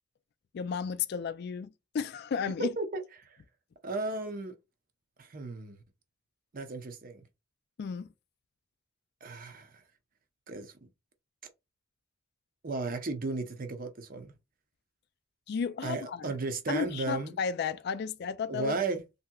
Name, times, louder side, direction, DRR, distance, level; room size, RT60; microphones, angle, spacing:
voice 1, 0.5-2.7 7.8-8.1 15.5-16.3 16.7-18.8, left 6 dB, 55° left, 0.3 m, -33 dB
voice 2, 2.8-3.4 3.8-4.5 5.2-5.8 6.5-7.2 9.2-9.7 10.5-10.7 12.6-14.3 15.8-17.4 18.5-19.0, right 3 dB, 45° right, 0.6 m, -35 dB
3.2 x 2.8 x 2.3 m
head